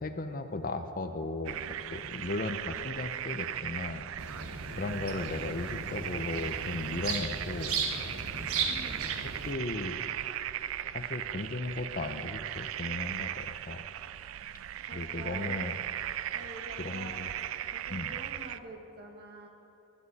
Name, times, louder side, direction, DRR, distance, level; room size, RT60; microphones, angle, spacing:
voice 1, 0.0-1.6 1.9-4.1 4.8-7.8 8.6-8.7 9.5-10.0 10.8-13.8 14.9-15.8 16.8-17.3 17.9-18.1, left 2 dB, 40° left, 8 dB, 0.6 m, -36 dB
sound 1, 1.4-18.6, right 11 dB, 65° right, 0.3 m, -38 dB
sound 2, 4.2-9.5, right 5 dB, 85° right, 1.4 m, -36 dB
voice 2, 8.6-9.1 14.9-15.6 16.3-17.2 17.7-19.5, right 1 dB, 45° right, 2 dB, 1.6 m, -47 dB
17.0 x 12.0 x 4.1 m, 2.7 s
head